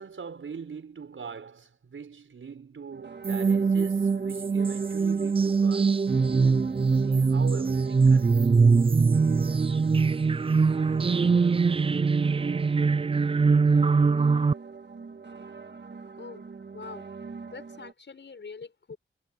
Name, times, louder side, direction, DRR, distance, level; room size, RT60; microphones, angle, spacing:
voice 1, 0.0-8.5, right 6 dB, 75° right, 6.4 m, -42 dB
sound 1, 2.9-17.9, right 5 dB, 55° right, 1.8 m, -44 dB
sound 2, 3.2-14.5, right 4 dB, 25° right, 0.4 m, -22 dB
voice 2, 16.7-17.0 17.4-19.0, left 5 dB, 60° left, 6.8 m, -43 dB
wide cardioid pair, 100°, 21 cm